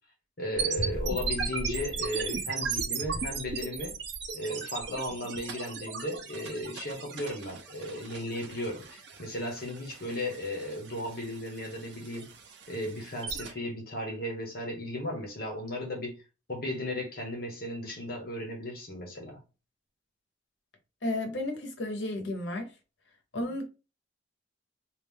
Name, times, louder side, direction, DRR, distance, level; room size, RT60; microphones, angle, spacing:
voice 1, 0.4-4.0 4.3-12.3 12.7-16.2 16.5-19.4, left 1 dB, 50° left, 1.1 m, -35 dB
sound 1, 0.6-13.5, right 4 dB, 70° right, 0.7 m, -36 dB
voice 2, 21.0-22.7 23.3-23.7, left 1 dB, 75° left, 1.0 m, -32 dB
3.3 x 2.5 x 3.6 m
head